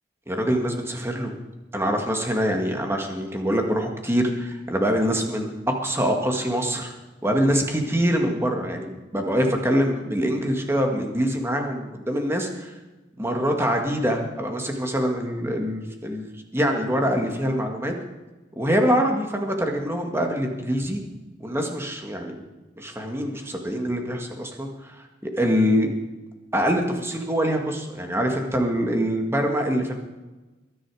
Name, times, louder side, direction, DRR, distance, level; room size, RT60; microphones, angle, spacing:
voice 1, 0.3-1.3 1.7-5.5 5.8-6.9 7.2-12.7 13.2-17.9 18.6-21.0 21.4-22.4 22.8-25.9 26.5-30.0, equal, 15° right, 3 dB, 1.8 m, -24 dB
22.0 x 10.5 x 4.9 m, 1.1 s
head